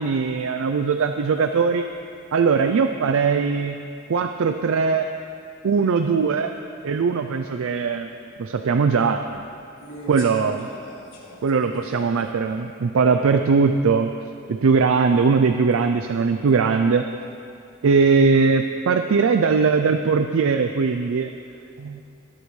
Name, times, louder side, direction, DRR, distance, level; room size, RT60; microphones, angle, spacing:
voice 1, 0.0-1.9 2.3-3.8 4.1-5.1 5.6-6.5 6.8-8.1 8.4-9.4 10.1-10.7 11.4-14.1 14.5-17.1 17.8-21.3 21.8-22.0, right 5 dB, 70° right, 7 dB, 0.4 m, -20 dB
voice 2, 9.8-12.3, left 1 dB, 65° left, -6 dB, 2.7 m, -41 dB
20.5 x 8.4 x 3.2 m, 2.6 s
head